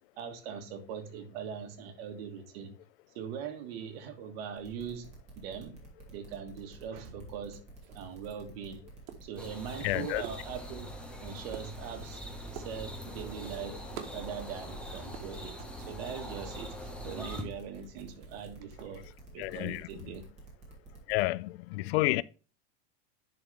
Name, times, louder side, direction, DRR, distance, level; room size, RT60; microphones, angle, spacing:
voice 1, 0.2-2.8 3.1-5.8 6.1-7.6 7.9-8.8 9.2-10.9 11.2-12.2 12.5-13.8 14.1-19.0 19.3-20.3, right 7 dB, 65° right, 1.6 m, -41 dB
sound 1, 4.6-21.2, right 3 dB, 20° right, 2.8 m, -51 dB
sound 2, 7.7-20.2, right 9 dB, 90° right, 1.3 m, -52 dB
sound 3, 9.4-17.4, equal, 5° left, 1.0 m, -43 dB
voice 2, 9.8-10.2 19.4-19.8 21.1-22.2, left 19 dB, 75° left, 0.5 m, -29 dB
10.5 x 4.0 x 3.3 m
supercardioid pair, 150°, 32 cm